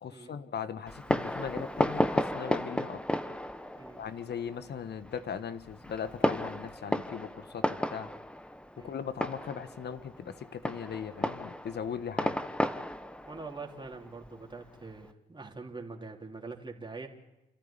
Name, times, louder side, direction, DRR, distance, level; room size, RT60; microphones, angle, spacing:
voice 1, 0.0-3.0 4.0-8.1 8.8-12.4, left 7 dB, 55° left, 12 dB, 1.4 m, -39 dB
Fireworks, 0.9-15.0, left 1 dB, 5° left, 1.3 m, -34 dB
voice 2, 13.2-17.1, right 3 dB, 25° right, 1 dB, 3.3 m, -44 dB
28.5 x 13.5 x 8.8 m, 0.97 s
hypercardioid pair, 45°, 21 cm